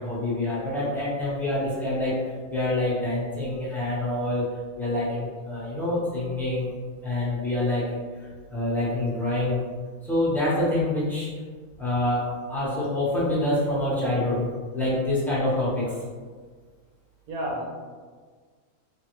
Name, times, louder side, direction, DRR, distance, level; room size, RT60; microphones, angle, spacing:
voice 1, 0.0-2.2 2.5-4.4 4.8-6.7 7.0-7.8 8.5-9.6 10.1-11.3 11.8-14.5 14.7-15.9, left 1 dB, ahead, -9 dB, 0.6 m, -26 dB
voice 2, 17.3-17.7, equal, 85° right, -2 dB, 1.2 m, -32 dB
3.2 x 2.3 x 3.0 m, 1.5 s
omnidirectional pair, 1.5 m